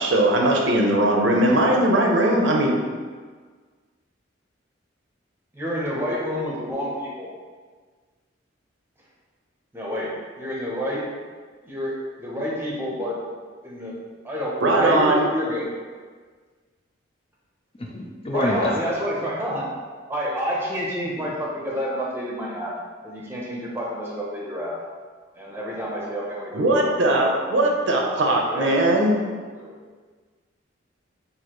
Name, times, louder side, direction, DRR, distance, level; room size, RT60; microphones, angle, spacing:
voice 1, 0.0-2.8 14.6-15.2 26.5-29.2, right 1 dB, 65° right, 0 dB, 0.6 m, -19 dB
voice 2, 5.5-7.3 9.7-11.2 11.6-13.2 13.6-14.0 14.2-15.7 18.3-19.7 20.1-22.7 23.0-24.8 25.3-27.6 28.0-28.9 29.6-29.8, equal, 10° right, -4 dB, 0.8 m, -29 dB
voice 3, 17.8-18.7, left 1 dB, 30° left, -1 dB, 0.5 m, -26 dB
6.3 x 2.7 x 3.0 m, 1.5 s
head